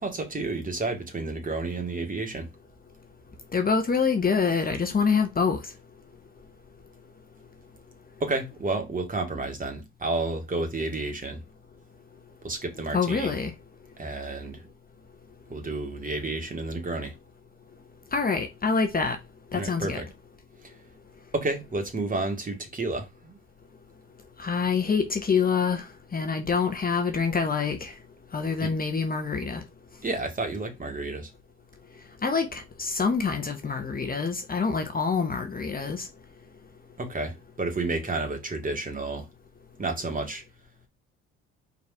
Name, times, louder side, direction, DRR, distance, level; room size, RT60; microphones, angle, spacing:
voice 1, 0.0-2.5 8.2-11.4 12.4-13.3 14.0-14.6 15.5-17.1 19.5-20.0 21.3-23.4 28.6-28.7 30.0-31.3 37.0-39.3 39.8-40.4, right 3 dB, 25° right, 2.5 m, -31 dB
voice 2, 3.5-5.6 12.9-13.5 18.1-19.2 19.5-20.0 24.4-25.8 26.1-27.9 28.3-29.6 32.2-36.1, left 5 dB, 30° left, 1.4 m, -26 dB
4.7 x 4.2 x 4.8 m
hypercardioid pair, 60°, 31 cm